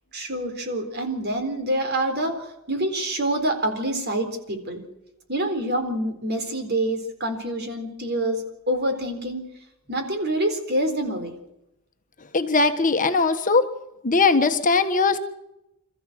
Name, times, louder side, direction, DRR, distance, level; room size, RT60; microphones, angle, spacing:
voice 1, 0.1-4.8 5.3-9.4 9.9-11.4, right 1 dB, 50° right, 6 dB, 4.0 m, -26 dB
voice 2, 12.3-13.6 14.0-15.2, left 4 dB, 35° left, 7 dB, 1.4 m, -20 dB
27.0 x 14.5 x 8.0 m, 0.88 s
head